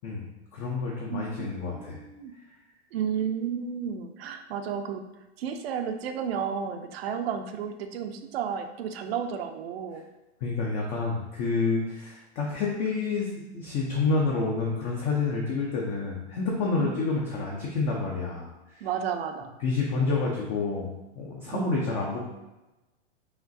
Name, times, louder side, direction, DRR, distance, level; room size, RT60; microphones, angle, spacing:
voice 1, 0.5-2.0 10.4-18.9 19.6-20.9 21.2-22.2, left 4 dB, 20° left, -2 dB, 0.4 m, -28 dB
voice 2, 1.1-2.3 2.9-5.0 5.4-10.0 16.8-17.0 18.8-19.6 21.5-21.8, right 7 dB, 60° right, 7 dB, 0.6 m, -32 dB
5.0 x 3.0 x 2.6 m, 1.0 s
hypercardioid pair, 135°, 34 cm